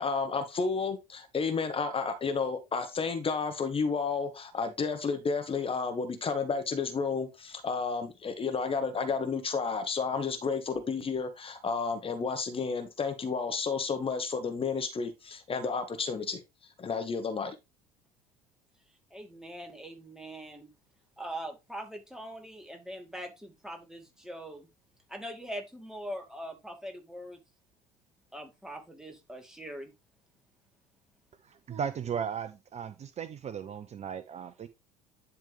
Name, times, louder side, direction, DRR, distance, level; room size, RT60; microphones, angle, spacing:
voice 1, 0.0-16.4 16.8-17.5, left 5 dB, 30° left, 1.3 m, -31 dB
voice 2, 19.1-20.7 21.2-24.7 25.1-27.4 28.3-29.9, equal, 5° right, 2.4 m, -42 dB
voice 3, 31.5-34.7, right 7 dB, 35° right, 0.8 m, -36 dB
10.5 x 3.6 x 3.4 m
figure-of-eight pair, 65°, 20 cm